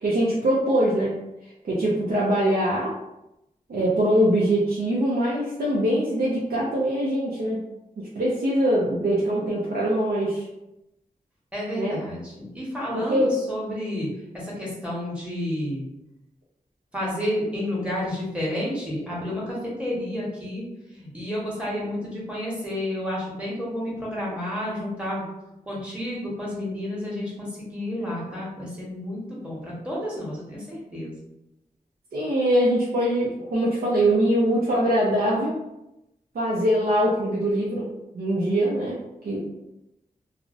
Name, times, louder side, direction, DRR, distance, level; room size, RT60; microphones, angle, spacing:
voice 1, 0.0-1.1 1.6-2.9 3.7-7.6 8.0-10.4 11.8-12.0 12.9-13.3 32.1-35.5 36.3-37.9 38.1-39.0 39.2-39.4, right 1 dB, 75° right, -6 dB, 0.5 m, -23 dB
voice 2, 11.5-14.1 14.3-15.8 16.9-20.6 20.9-25.3 25.7-31.1, left 1 dB, 10° right, -6 dB, 1.0 m, -30 dB
2.5 x 2.0 x 2.5 m, 0.89 s
wide cardioid pair, 65°, 16 cm